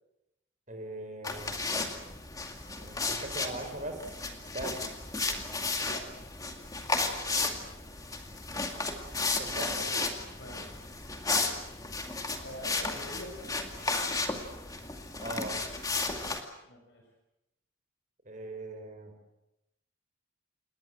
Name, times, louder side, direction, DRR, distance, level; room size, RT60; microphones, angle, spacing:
voice 1, 0.7-1.5 2.8-4.9 7.2-7.5 9.2-9.7 15.2-15.6 18.2-19.1, right 1 dB, 35° right, 6 dB, 4.7 m, -40 dB
sound 1, 1.2-16.4, left 3 dB, 15° left, 2.2 m, -34 dB
voice 2, 9.6-10.8 12.4-13.3 16.6-17.0, equal, 55° left, 1 dB, 5.8 m, -45 dB
28.0 x 20.5 x 7.8 m, 0.90 s
head